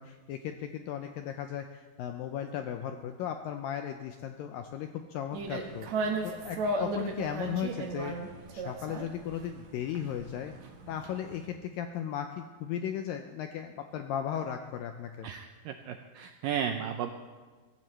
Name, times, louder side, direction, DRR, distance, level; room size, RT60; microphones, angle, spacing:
voice 1, 0.0-8.2 8.5-10.5 10.9-15.3, left 9 dB, 85° left, 6 dB, 2.0 m, -36 dB
sound 1, 5.3-11.5, right 2 dB, 60° right, 2.1 m, -36 dB
voice 2, 15.2-17.1, right 8 dB, 85° right, 5 dB, 2.0 m, -34 dB
22.5 x 15.0 x 3.3 m, 1.4 s
omnidirectional pair, 4.7 m